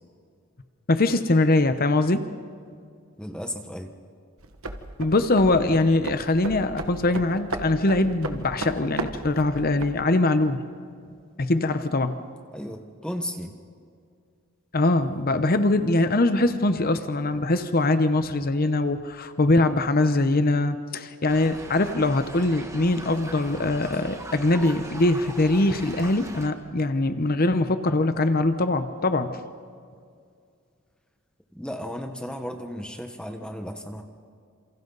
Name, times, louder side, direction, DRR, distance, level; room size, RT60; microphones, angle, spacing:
voice 1, 0.9-2.3 5.0-10.6 11.4-12.2 14.7-29.4, left 2 dB, 45° left, 10 dB, 0.9 m, -22 dB
voice 2, 3.2-3.9 12.5-13.5 31.5-34.0, equal, 5° left, 4 dB, 1.2 m, -34 dB
sound 1, 4.4-10.0, right 2 dB, 80° right, 1.6 m, -35 dB
sound 2, 21.3-26.5, right 1 dB, 15° right, 1.8 m, -40 dB
28.5 x 27.5 x 4.0 m, 2.2 s
head